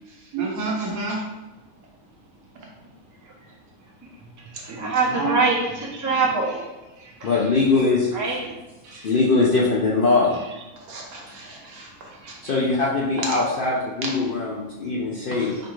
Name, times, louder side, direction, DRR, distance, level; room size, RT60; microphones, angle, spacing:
voice 1, 0.3-1.2 4.5-5.4 10.9-12.4, right 3 dB, 90° right, -2 dB, 1.3 m, -30 dB
voice 2, 4.4-6.7 7.0-7.3 8.1-8.6 8.8-9.1 12.2-12.3, right 3 dB, 30° right, -3 dB, 0.3 m, -25 dB
voice 3, 7.2-8.1 8.9-10.3 12.4-15.6, left 3 dB, 65° left, -5 dB, 0.5 m, -21 dB
4.9 x 2.3 x 3.0 m, 1.1 s
omnidirectional pair, 1.5 m